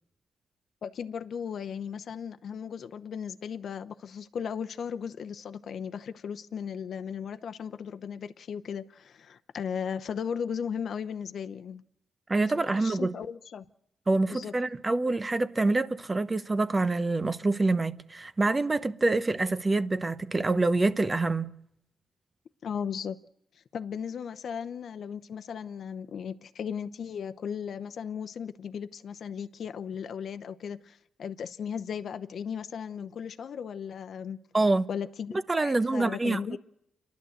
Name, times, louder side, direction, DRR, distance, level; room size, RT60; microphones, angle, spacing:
voice 1, 0.8-11.8 12.8-13.6 14.3-14.5 22.6-23.2 23.6-34.4 34.9-36.6, left 7 dB, 60° left, 0.7 m, -36 dB
voice 2, 12.3-13.1 14.1-21.5 34.5-34.9 35.5-36.6, right 2 dB, 25° right, 0.9 m, -26 dB
29.5 x 11.5 x 7.9 m
cardioid pair, 95°, 0 cm